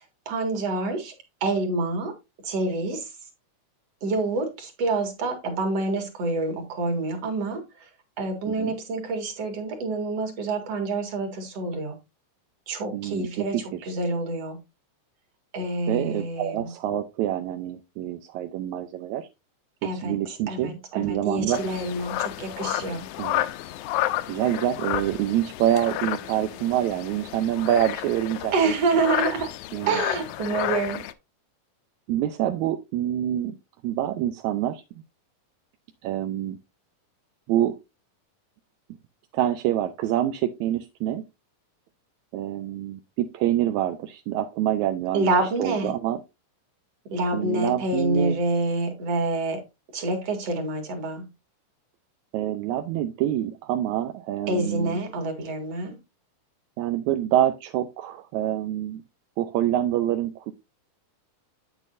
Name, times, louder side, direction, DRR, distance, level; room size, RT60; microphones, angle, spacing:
voice 1, 0.3-1.1 1.4-2.1 2.4-3.1 4.0-7.6 8.2-12.0 12.7-14.6 15.5-16.7 19.8-20.1 20.5-23.1 28.5-29.5 29.9-31.0 45.1-45.9 47.1-49.6 49.9-51.2 54.5-55.9, right 2 dB, 55° right, 2.9 m, -27 dB
voice 2, 12.9-13.9 15.9-19.3 19.8-21.6 23.2-23.5 24.3-28.7 29.7-30.0 32.1-33.6 33.8-34.8 36.0-36.6 37.5-37.8 39.3-41.2 42.3-45.3 45.6-46.2 47.3-48.4 52.3-55.0 56.8-59.0 59.4-60.5, right 12 dB, 75° right, 1.8 m, -26 dB
sound 1, 21.5-31.1, left 14 dB, 80° left, 1.9 m, -31 dB
8.8 x 8.2 x 2.6 m
omnidirectional pair, 3.7 m